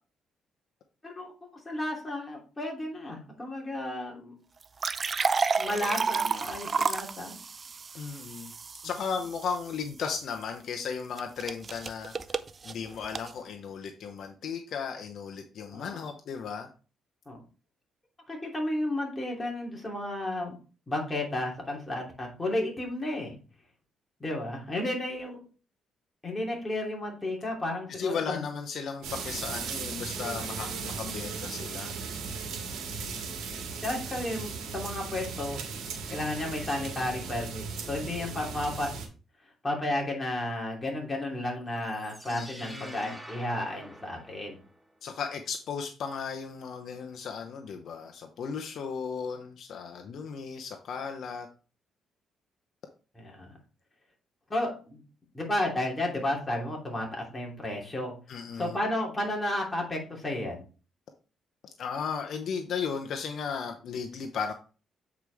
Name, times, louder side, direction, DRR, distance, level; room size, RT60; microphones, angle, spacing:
voice 1, 1.0-4.4 5.6-7.4 15.7-16.0 17.3-17.4 18.3-20.5 20.9-23.4 24.2-25.4 26.2-28.4 33.8-35.6 36.1-38.9 39.6-44.6 53.2-53.5 54.5-55.0 55.3-58.1 58.6-60.6, left 1 dB, 20° left, -1 dB, 3.0 m, -32 dB
sound 1, 4.6-9.7 11.2-13.3, right 5 dB, 35° right, 0.5 m, -31 dB
voice 2, 7.9-8.5 8.8-12.1 12.6-16.7 27.9-31.9 42.3-43.2 45.0-51.5 58.3-58.7 61.8-64.5, left 6 dB, 65° left, 5 dB, 0.8 m, -35 dB
sound 2, 29.0-39.1, right 5 dB, 85° right, 1.8 m, -37 dB
sound 3, 41.8-44.9, right 1 dB, 5° right, 1.5 m, -47 dB
8.1 x 4.8 x 3.4 m, 0.35 s
cardioid pair, 90°, 0 cm